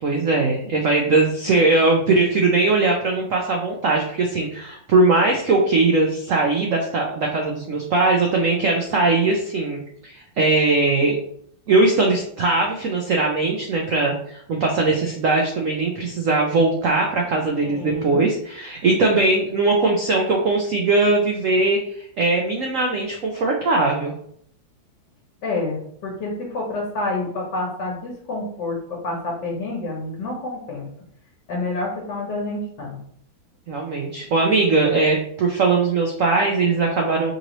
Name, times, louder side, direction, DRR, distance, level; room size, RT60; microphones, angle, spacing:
voice 1, 0.0-11.2 11.7-24.1 33.7-37.3, right 3 dB, 85° right, 1 dB, 0.7 m, -20 dB
voice 2, 17.6-18.2 25.4-30.8 31.5-33.0, left 2 dB, 65° left, -3 dB, 1.5 m, -28 dB
5.2 x 3.0 x 2.9 m, 0.67 s
omnidirectional pair, 2.1 m